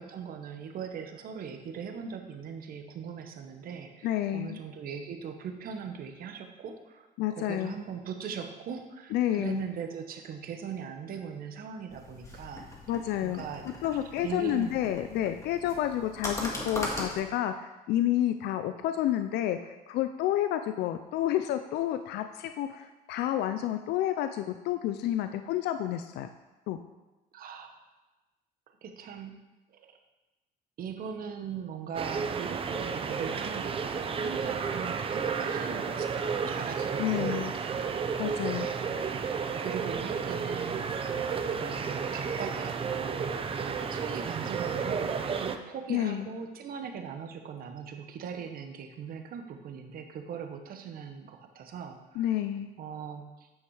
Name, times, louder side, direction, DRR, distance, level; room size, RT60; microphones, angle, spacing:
voice 1, 0.0-12.7 13.2-13.7 14.2-14.8 27.3-27.7 28.8-29.4 29.7-30.0 30.8-38.1 38.6-39.1 39.6-40.9 41.1-43.3 43.6-52.3 52.8-53.5, right 7 dB, 60° right, 5 dB, 1.1 m, -40 dB
voice 2, 4.0-4.6 7.2-7.7 9.1-9.6 12.9-13.4 13.8-26.3 26.7-26.8 37.0-37.5 38.2-38.7 45.9-46.3 52.2-52.7, left 12 dB, 80° left, 8 dB, 0.5 m, -30 dB
sound 1, 11.9-17.2, left 1 dB, 15° left, 1.8 m, -39 dB
sound 2, 31.9-45.6, right 6 dB, 35° right, 0.6 m, -32 dB
9.1 x 6.1 x 4.8 m, 1.1 s
cardioid pair, 110°, 17 cm